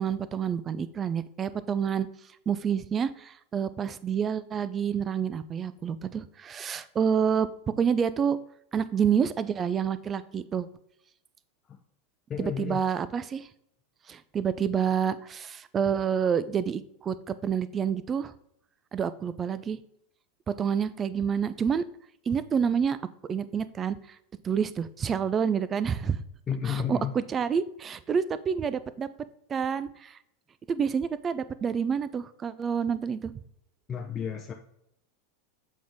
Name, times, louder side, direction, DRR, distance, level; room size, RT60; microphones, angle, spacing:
voice 1, 0.0-2.1 2.5-7.5 7.8-8.4 8.7-10.7 12.4-13.5 14.1-18.3 18.9-19.8 20.5-21.8 22.3-23.0 23.3-24.0 24.4-26.2 26.6-29.1 29.5-30.2 30.7-33.3, right 7 dB, 30° right, 15 dB, 0.4 m, -28 dB
voice 2, 12.3-12.8 26.5-27.2 33.9-34.5, left 8 dB, 25° left, 2 dB, 0.6 m, -32 dB
7.2 x 4.6 x 3.6 m, 0.74 s
hypercardioid pair, 90°, 0 cm